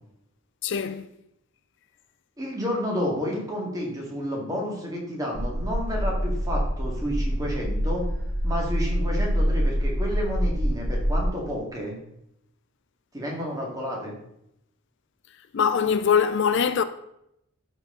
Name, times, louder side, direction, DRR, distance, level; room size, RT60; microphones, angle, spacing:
voice 1, 0.6-1.1 15.5-16.8, left 7 dB, 55° left, 0.4 m, -22 dB
voice 2, 2.4-8.1 8.4-12.0 13.1-14.1, equal, 15° right, 2.0 m, -30 dB
sound 1, 5.3-11.2, equal, 55° right, 2.1 m, -26 dB
12.5 x 4.6 x 3.8 m
head